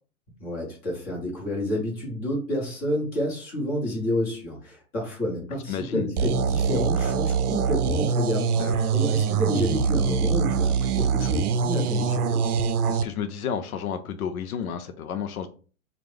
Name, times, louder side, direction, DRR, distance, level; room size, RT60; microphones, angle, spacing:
voice 1, 0.4-12.5, equal, 20° left, -3 dB, 1.4 m, -29 dB
voice 2, 5.7-6.1 8.6-8.9 12.8-15.5, left 8 dB, 75° left, 8 dB, 0.6 m, -31 dB
sound 1, 6.2-13.0, right 6 dB, 85° right, 0.6 m, -24 dB
3.2 x 2.4 x 3.4 m, 0.38 s
hypercardioid pair, 155°, 44 cm